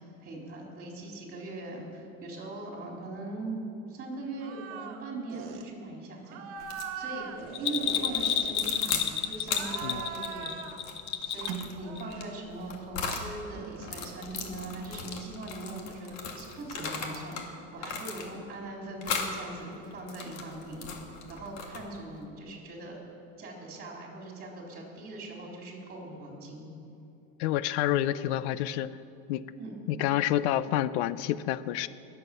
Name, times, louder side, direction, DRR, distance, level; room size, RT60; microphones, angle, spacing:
voice 1, 0.2-6.4 7.0-10.5 11.2-20.9 21.3-23.0 23.4-26.6 29.6-29.7, right 2 dB, 30° right, -1 dB, 4.0 m, -40 dB
sound 1, 4.4-5.0 5.3-5.7 6.3-9.0 9.5-10.8 11.3-12.4 13.5-15.3, right 8 dB, 70° right, 1.5 m, -41 dB
sound 2, 6.6-6.9 7.8-9.1 9.4-13.3 13.8-17.5 17.8-18.5 19.0-19.4 19.9-22.0, left 5 dB, 55° left, 2.1 m, -37 dB
Bell, 7.5-11.7 12.0-12.1, left 9 dB, 35° left, 0.7 m, -30 dB
voice 2, 27.4-28.9 29.3-29.4 29.9-31.9, left 12 dB, 85° left, 16 dB, 0.6 m, -28 dB
21.5 x 8.2 x 6.7 m, 2.8 s
cardioid pair, 150°, 33 cm